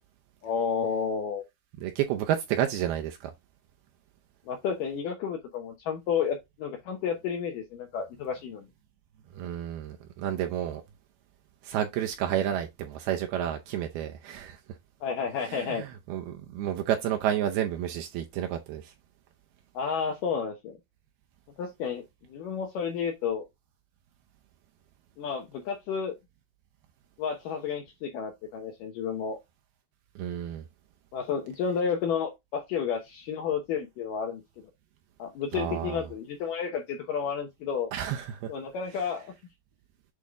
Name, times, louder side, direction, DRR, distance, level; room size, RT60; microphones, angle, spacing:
voice 1, 0.4-1.4 4.5-8.7 15.0-15.8 19.7-20.8 21.6-22.0 22.3-23.4 25.2-26.1 27.2-29.4 31.1-34.4 35.2-37.9 38.5-39.3, left 6 dB, 80° left, 1.9 m, -31 dB
voice 2, 1.8-3.3 9.3-10.8 11.6-14.6 15.4-18.9 30.2-30.6 35.5-36.0 37.9-38.5, right 11 dB, 80° right, 2.3 m, -30 dB
8.4 x 3.5 x 3.6 m
omnidirectional pair, 5.2 m